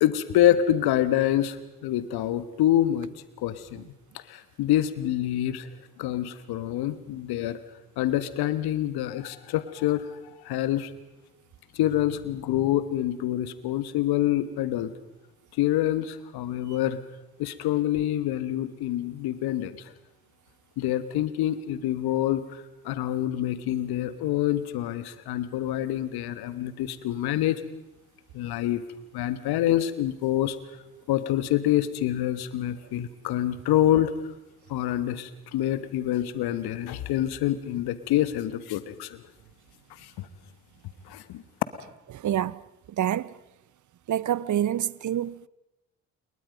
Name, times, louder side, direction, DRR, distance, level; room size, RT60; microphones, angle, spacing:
voice 1, 0.0-1.6 1.8-3.1 3.4-3.8 4.3-5.7 6.0-7.6 8.0-10.9 11.7-14.9 15.6-17.0 17.4-19.8 20.8-22.4 22.8-27.6 28.3-28.8 29.1-30.6 31.1-34.1 34.7-39.2 40.2-40.3 41.1-41.4, left 12 dB, 70° left, 1.6 m, -26 dB
voice 2, 42.1-42.6 43.0-43.3 44.1-45.5, right 11 dB, 50° right, 0.8 m, -27 dB
28.5 x 22.5 x 5.4 m
hypercardioid pair, 45°, 39 cm